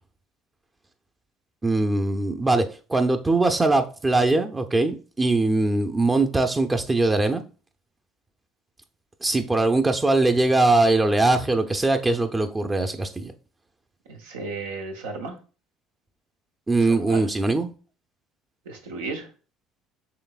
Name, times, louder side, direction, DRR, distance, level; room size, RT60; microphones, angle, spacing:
voice 1, 1.6-2.6 2.9-7.4 9.2-13.3 16.7-17.7, right 2 dB, 20° right, 0.6 m, -21 dB
voice 2, 14.1-15.3 16.8-17.2 18.6-19.3, right 3 dB, 90° right, 1.0 m, -34 dB
5.8 x 3.3 x 2.4 m
hypercardioid pair, 75°, 0 cm